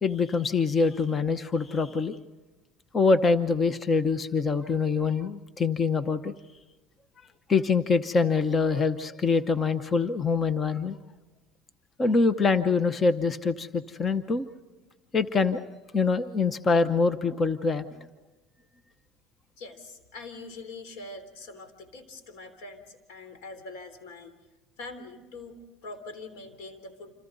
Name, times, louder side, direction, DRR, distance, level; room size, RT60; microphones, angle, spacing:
voice 1, 0.0-2.2 2.9-6.3 7.5-11.0 12.0-14.5 15.1-15.7 15.9-17.8, left 4 dB, 25° left, 11 dB, 0.8 m, -24 dB
voice 2, 19.6-24.4 24.8-27.1, left 3 dB, 90° left, 9 dB, 3.6 m, -43 dB
28.0 x 27.0 x 4.0 m, 1.2 s
cardioid pair, 140°, 0 cm